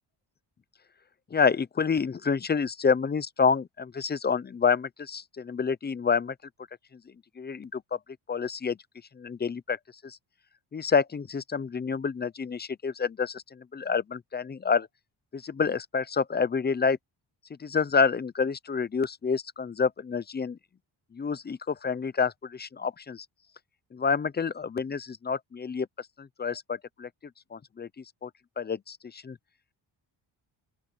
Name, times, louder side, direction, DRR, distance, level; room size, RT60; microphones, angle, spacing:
voice 1, 1.3-6.3 7.4-8.0 8.3-8.8 9.1-10.2 10.7-14.9 15.3-17.0 17.6-20.6 21.1-23.3 23.9-27.1 27.5-28.3 28.6-29.4, left 5 dB, 20° left, 0.4 m, -28 dB
open air
wide cardioid pair, 165°, 48 cm